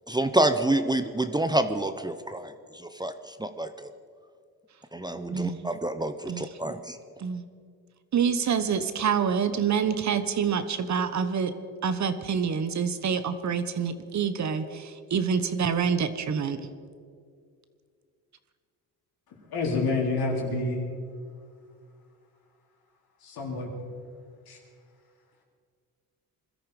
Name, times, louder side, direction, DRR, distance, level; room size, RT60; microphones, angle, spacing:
voice 1, 0.1-3.9 4.9-7.0, right 1 dB, 10° right, 9 dB, 0.7 m, -28 dB
voice 2, 5.3-5.7 6.3-6.5 7.2-7.4 8.1-11.5 11.8-16.7, right 6 dB, 50° right, 11 dB, 1.1 m, -27 dB
voice 3, 19.5-20.8 23.2-23.7 24.5-24.6, left 3 dB, 75° left, -1 dB, 4.1 m, -28 dB
21.0 x 13.5 x 5.0 m, 2.2 s
cardioid pair, 90°, 37 cm